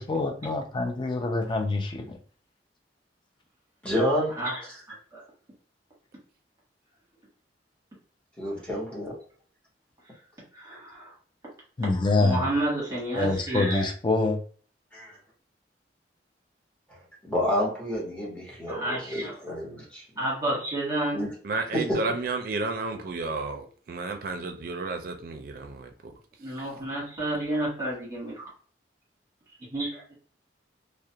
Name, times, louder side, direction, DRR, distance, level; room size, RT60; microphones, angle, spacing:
voice 1, 0.0-2.2 11.8-12.5 13.1-14.4, left 3 dB, 25° left, 4 dB, 0.4 m, -26 dB
voice 2, 3.8-4.3 8.4-9.2 14.9-15.2 16.9-20.0 21.1-21.3 21.7-22.0, equal, 5° left, -5 dB, 0.9 m, -29 dB
voice 3, 4.9-5.2 10.5-11.1 12.2-13.8 18.7-19.3 20.2-21.2 26.4-28.5 29.7-30.0, right 1 dB, 20° right, -6 dB, 1.0 m, -30 dB
voice 4, 21.4-26.1, right 3 dB, 55° right, 5 dB, 0.4 m, -32 dB
2.4 x 2.1 x 2.7 m, 0.43 s
head